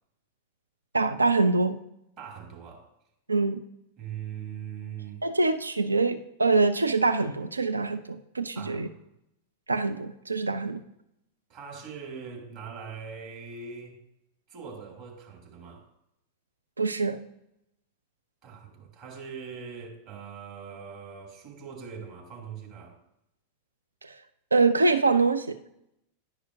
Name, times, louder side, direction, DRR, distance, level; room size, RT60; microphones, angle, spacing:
voice 1, 0.9-1.8 3.3-3.6 5.2-8.9 9.7-10.8 16.8-17.2 24.0-24.2 24.5-25.6, right 3 dB, 80° right, 9 dB, 0.3 m, -24 dB
voice 2, 2.2-2.9 4.0-5.3 8.5-9.0 11.5-14.0 14.5-15.8 18.4-23.0, right 6 dB, 40° right, 0 dB, 1.9 m, -41 dB
10.5 x 5.0 x 2.5 m, 0.81 s
figure-of-eight pair, 90°, 0 cm